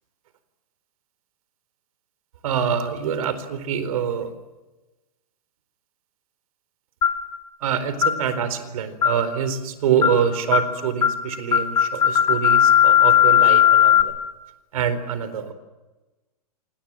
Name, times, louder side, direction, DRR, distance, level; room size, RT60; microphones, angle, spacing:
voice 1, 2.4-4.3 7.6-14.1 14.7-15.5, right 8 dB, 60° right, 12 dB, 4.2 m, -25 dB
sound 1, 7.0-7.3 8.0-8.2 9.0-9.3 10.0-10.2 10.5-10.7 11.0-11.2 11.5-14.0, left 10 dB, 75° left, 5.2 m, -17 dB
28.0 x 26.5 x 7.5 m, 1.1 s
hypercardioid pair, 130°, 20 cm